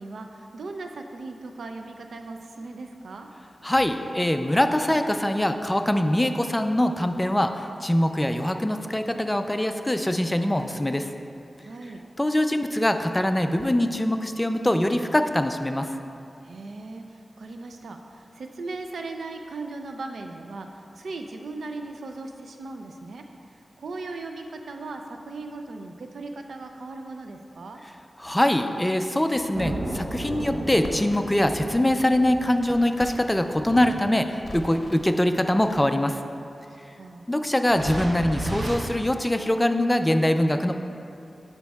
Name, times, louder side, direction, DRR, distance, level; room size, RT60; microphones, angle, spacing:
voice 1, 0.0-3.3 11.6-12.0 16.4-23.2 23.8-27.8 34.7-35.0 36.7-37.2, right 3 dB, 90° right, 4 dB, 0.4 m, -38 dB
voice 2, 3.6-11.1 12.2-15.9 28.2-36.2 37.3-40.7, left 1 dB, 15° left, 7 dB, 0.4 m, -23 dB
sound 1, 29.5-35.0 35.7-35.8 37.7-38.8, right 1 dB, 70° right, 1.0 m, -34 dB
Crackle, 30.0-31.5 31.7-33.3 33.7-35.0 35.6-36.2, left 2 dB, 60° left, 0.7 m, -42 dB
12.5 x 5.2 x 2.3 m, 2.6 s
cardioid pair, 60°, 0 cm